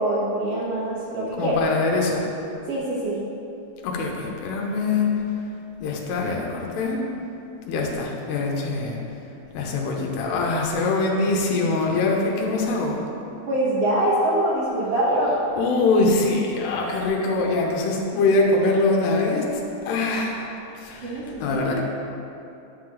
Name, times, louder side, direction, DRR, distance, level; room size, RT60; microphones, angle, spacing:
voice 1, 0.0-1.6 2.7-3.2 13.5-15.3 21.0-21.2 21.5-21.8, right 1 dB, 75° right, -9 dB, 1.4 m, -24 dB
voice 2, 1.4-2.3 3.8-5.1 5.8-7.1 7.7-9.0 9.5-13.0 15.6-19.5 19.8-20.5 20.7-21.8, left 3 dB, 90° left, -1 dB, 3.1 m, -23 dB
11.0 x 3.9 x 7.6 m, 2.8 s
omnidirectional pair, 4.8 m